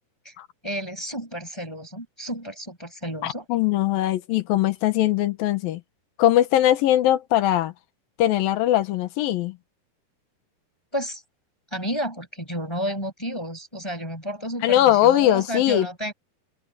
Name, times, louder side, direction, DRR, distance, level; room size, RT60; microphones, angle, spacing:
voice 1, 0.6-3.5 10.9-11.2 11.7-16.1, equal, 5° left, 5.7 m, -31 dB
voice 2, 3.2-5.8 6.2-7.7 8.2-9.6 14.6-15.9, left 13 dB, 70° left, 2.8 m, -20 dB
open air
omnidirectional pair, 4.6 m